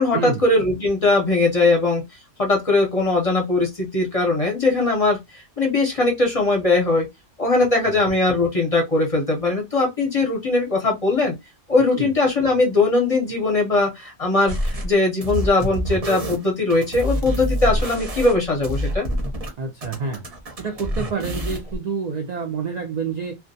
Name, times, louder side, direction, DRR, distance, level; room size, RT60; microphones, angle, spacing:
voice 1, 0.0-2.0 2.4-7.0 7.4-11.3 11.7-19.1, left 2 dB, 40° left, 0.6 m, -20 dB
sound 1, 14.5-14.9 15.2-19.5 19.8-21.8, equal, 35° right, 0.7 m, -27 dB
voice 2, 19.6-20.3 20.6-23.4, right 5 dB, 75° right, 0.3 m, -28 dB
2.3 x 2.1 x 2.6 m
omnidirectional pair, 1.3 m